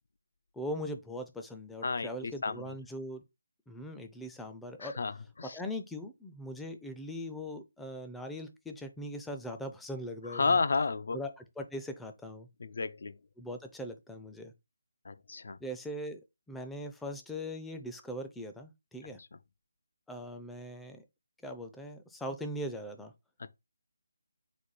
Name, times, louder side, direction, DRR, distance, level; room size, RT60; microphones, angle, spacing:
voice 1, 0.5-3.2 3.7-4.9 5.4-10.6 11.1-12.5 13.4-14.5 15.6-16.2 16.5-19.2 20.1-21.0 21.4-23.1, equal, 5° left, 0.4 m, -40 dB
voice 2, 1.8-2.7 4.8-5.1 5.4-5.6 10.3-11.2 12.6-13.2 15.1-15.6 23.4-23.5, left 4 dB, 60° left, 0.4 m, -32 dB
4.2 x 2.3 x 4.7 m
figure-of-eight pair, 165°, 0 cm